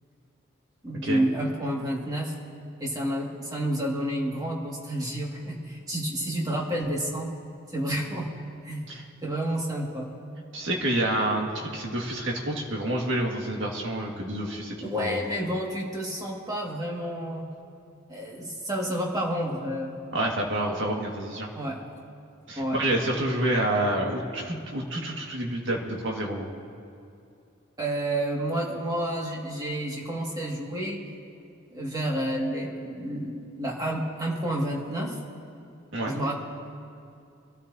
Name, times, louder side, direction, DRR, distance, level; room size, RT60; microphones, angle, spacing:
voice 1, 0.8-2.3 2.8-7.3 7.7-8.3 8.6-8.9 9.2-10.1 14.8-17.5 18.1-20.0 21.6-21.8 22.6-22.8 27.8-31.0 31.7-35.2 36.1-36.3, right 1 dB, 20° right, -2 dB, 2.1 m, -30 dB
voice 2, 10.5-15.2 20.1-21.5 22.5-26.5 35.9-36.1, right 1 dB, 65° right, -1 dB, 2.0 m, -28 dB
25.0 x 13.0 x 2.8 m, 2.5 s
head